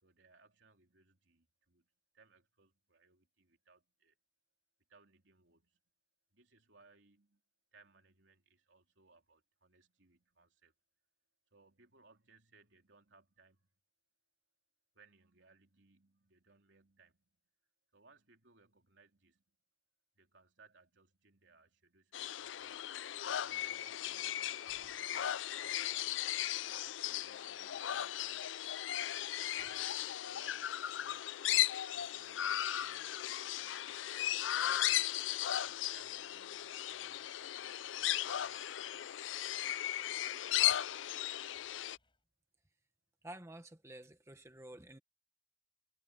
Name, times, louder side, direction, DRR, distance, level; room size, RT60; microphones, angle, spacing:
voice 1, 0.0-1.9 2.1-4.1 4.9-5.8 6.3-7.4 7.7-10.7 11.5-13.7 14.9-17.3 17.9-19.4 20.2-22.9 23.4-26.3 26.7-28.6 29.1-29.9 30.2-31.4 31.9-35.4 35.9-37.9 38.2-39.5, right 4 dB, 75° right, 3.1 m, -67 dB
sound 1, 22.1-42.0, left 12 dB, 80° left, 0.4 m, -36 dB
sound 2, 24.6-25.9 26.9-28.2 28.5-30.4 30.7-31.5 32.9-41.2 41.6-42.2, left 3 dB, 25° left, 8.0 m, -75 dB
voice 2, 43.2-45.0, right 1 dB, 15° right, 1.3 m, -51 dB
head